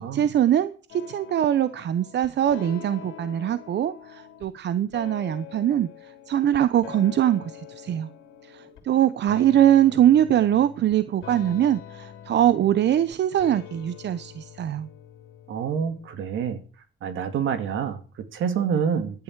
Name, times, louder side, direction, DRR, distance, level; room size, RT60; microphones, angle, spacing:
voice 1, 0.0-8.1 8.4-14.9, right 11 dB, 60° right, 0.9 m, -22 dB
sound 1, 0.9-4.5 4.9-8.9 9.3-16.4, left 10 dB, 90° left, 3.1 m, -44 dB
voice 2, 15.5-16.6 17.0-19.2, right 7 dB, 80° right, 2.5 m, -27 dB
15.5 x 11.0 x 4.7 m
cardioid pair, 90°, 20 cm